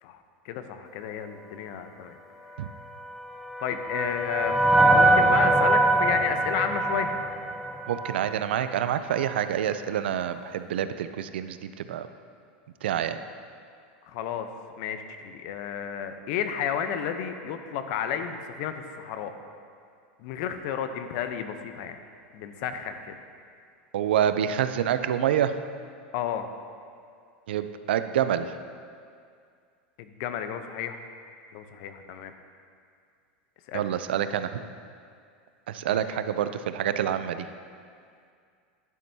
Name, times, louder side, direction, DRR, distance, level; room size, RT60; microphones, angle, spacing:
voice 1, 0.0-2.2 2.4-2.9 3.6-4.6 4.9-7.2 14.0-14.5 14.8-19.4 20.2-22.0 22.3-23.2 26.1-26.5 30.0-31.0 31.5-32.3 33.7-33.9 35.9-36.0, left 8 dB, 60° left, 8 dB, 0.8 m, -32 dB
sound 1, 3.1-8.4, right 2 dB, ahead, 0.6 m, -23 dB
voice 2, 7.9-12.1 12.8-13.2 23.9-25.6 27.5-28.5 33.7-34.7 35.7-37.5, right 10 dB, 80° right, 11 dB, 0.5 m, -27 dB
11.0 x 10.5 x 2.8 m, 2.2 s
hypercardioid pair, 115°, 6 cm